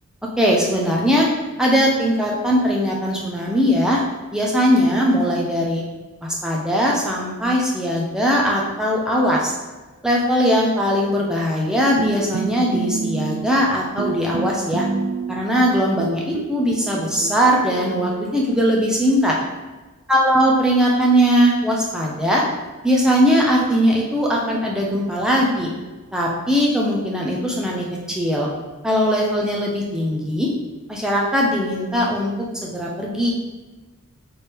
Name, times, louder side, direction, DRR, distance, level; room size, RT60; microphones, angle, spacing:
voice 1, 0.4-1.3 1.6-4.0 4.3-5.8 6.2-9.5 10.0-14.8 15.3-19.3 20.1-22.4 22.8-25.7 26.1-28.5 28.8-30.5 30.9-32.3 32.6-33.3, equal, 5° right, -3 dB, 0.5 m, -20 dB
sound 1, 12.0-13.7 14.0-15.6 16.0-18.6, right 5 dB, 70° right, 0.3 m, -28 dB
4.3 x 3.3 x 3.4 m, 1.2 s
head